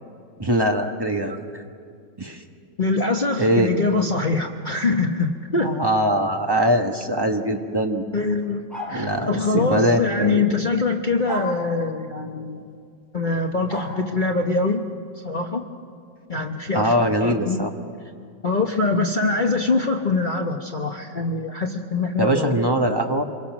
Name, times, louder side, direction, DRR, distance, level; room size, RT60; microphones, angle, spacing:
voice 1, 0.4-1.6 2.2-2.4 3.4-3.7 5.6-8.0 8.9-10.4 16.7-17.7 22.2-23.2, right 1 dB, 15° right, 3 dB, 1.1 m, -22 dB
voice 2, 2.8-5.7 8.1-8.6 8.9-12.7 13.1-14.8 15.2-15.6 16.3-16.9 17.2-17.7 18.4-22.5, left 3 dB, 35° left, 2 dB, 0.8 m, -23 dB
sound 1, 8.7-9.1 11.3-11.6 13.7-13.9, equal, ahead, 5.2 m, -31 dB
27.5 x 22.5 x 6.2 m, 2.3 s
omnidirectional pair, 2.2 m